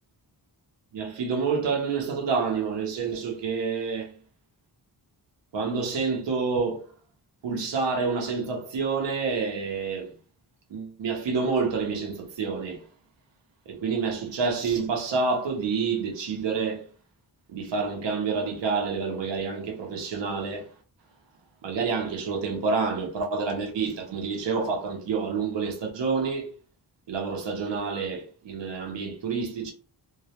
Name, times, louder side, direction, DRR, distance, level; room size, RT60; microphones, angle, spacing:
voice 1, 0.9-4.2 5.5-6.8 7.4-10.1 10.7-12.9 13.7-16.8 17.5-20.7 21.6-26.5 27.1-29.7, right 5 dB, 85° right, 0.7 m, -28 dB
2.2 x 2.0 x 2.7 m
wide cardioid pair, 120°, 42 cm